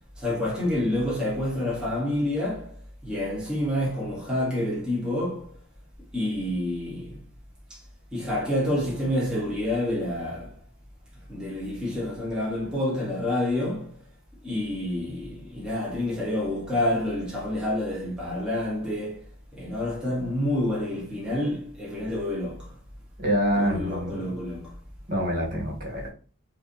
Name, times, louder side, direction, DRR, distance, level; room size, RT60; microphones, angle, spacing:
voice 1, 0.2-5.6 6.1-7.2 7.7-7.8 8.1-10.6 11.3-14.0 14.4-19.3 19.5-22.7 23.6-24.7, left 1 dB, 5° right, 1.3 m, -28 dB
voice 2, 23.2-24.2 25.1-26.1, equal, 40° right, 2.2 m, -26 dB
5.9 x 2.7 x 2.7 m
head